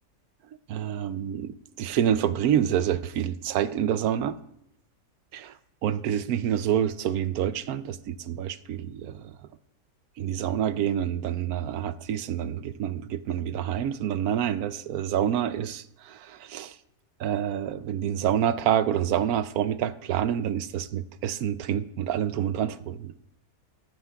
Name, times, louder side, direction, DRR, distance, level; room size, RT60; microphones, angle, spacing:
voice 1, 0.7-4.4 5.3-5.5 5.8-9.3 10.2-16.7 17.2-23.1, right 9 dB, 70° right, 1.0 m, -27 dB
22.5 x 9.3 x 2.3 m
omnidirectional pair, 1.7 m